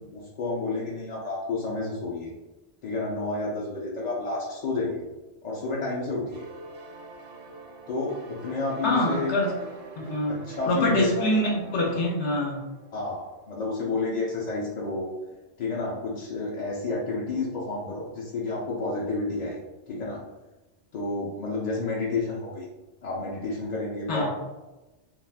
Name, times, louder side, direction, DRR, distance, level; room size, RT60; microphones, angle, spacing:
voice 1, 0.1-2.3 2.8-5.0 5.4-6.4 7.9-9.3 10.5-11.3 12.9-15.1 15.6-19.6 19.9-20.2 20.9-22.6 23.0-24.3, left 3 dB, 55° left, -4 dB, 0.5 m, -30 dB
sound 1, 6.3-13.8, right 3 dB, 75° right, 0.9 m, -45 dB
voice 2, 8.8-9.6 10.0-10.4 10.7-12.6 24.1-24.3, left 1 dB, 75° left, -2 dB, 1.0 m, -25 dB
2.5 x 2.3 x 3.3 m, 1.1 s
omnidirectional pair, 1.2 m